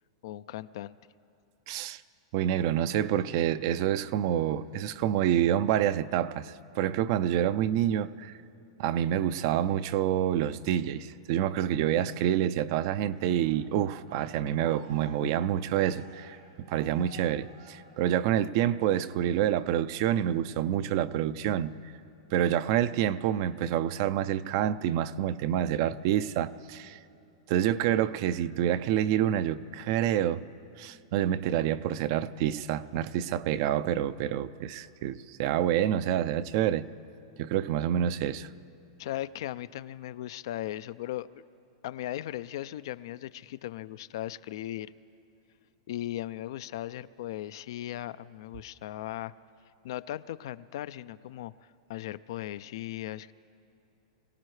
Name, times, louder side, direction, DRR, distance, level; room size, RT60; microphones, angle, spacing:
voice 1, 0.2-1.0 39.0-41.3 41.8-44.9 45.9-49.3 49.8-51.5 51.9-53.3, left 13 dB, 65° left, 0.4 m, -37 dB
voice 2, 1.7-2.0 2.3-8.3 8.8-16.4 16.7-21.8 22.3-27.0 27.5-30.4 30.8-36.9 37.4-38.5, right 11 dB, 55° right, 0.5 m, -27 dB
Cheering, 13.1-18.4 18.8-19.2, right 1 dB, 80° right, 3.0 m, -54 dB
24.5 x 17.0 x 3.2 m
hypercardioid pair, 125°, 2 cm